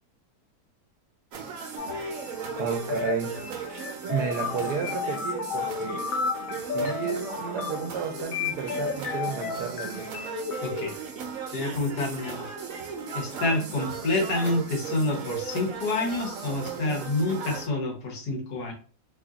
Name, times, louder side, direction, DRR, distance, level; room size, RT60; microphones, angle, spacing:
sound 1, 1.3-17.7, right 6 dB, 65° right, 1.1 m, -37 dB
sound 2, 1.8-10.9, left 5 dB, 65° left, 1.0 m, -33 dB
voice 1, 2.5-3.4 4.1-6.1 6.5-10.1, right 6 dB, 80° right, 1.1 m, -32 dB
voice 2, 10.6-10.9 11.5-12.5 13.1-18.7, left 2 dB, 85° left, 1.7 m, -28 dB
3.5 x 2.4 x 3.8 m
omnidirectional pair, 1.7 m